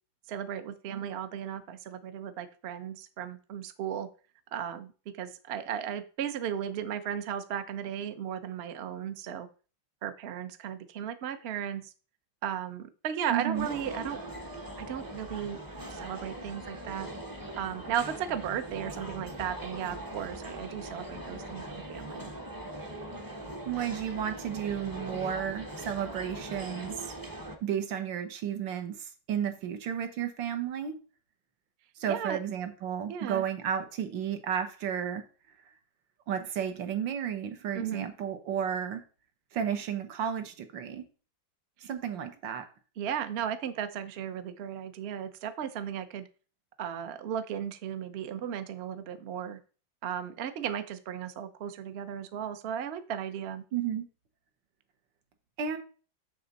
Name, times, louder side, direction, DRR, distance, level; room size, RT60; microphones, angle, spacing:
voice 1, 0.3-4.1 4.5-9.5 10.0-11.9 12.4-14.2 14.8-15.6 15.9-17.1 17.6-22.3 32.1-32.4 33.1-33.4 37.7-38.1 41.8-41.9 43.0-46.2 46.8-49.6 50.0-53.6, right 9 dB, 65° right, 10 dB, 0.6 m, -35 dB
voice 2, 13.3-13.7 23.7-27.1 27.6-30.9 32.0-35.2 36.3-39.0 39.5-41.1 41.8-42.6 53.7-54.0 55.6-55.8, right 8 dB, 85° right, 7 dB, 1.7 m, -32 dB
sound 1, 13.5-27.6, right 1 dB, 25° right, 0.5 m, -41 dB
6.7 x 6.7 x 4.0 m, 0.37 s
omnidirectional pair, 2.0 m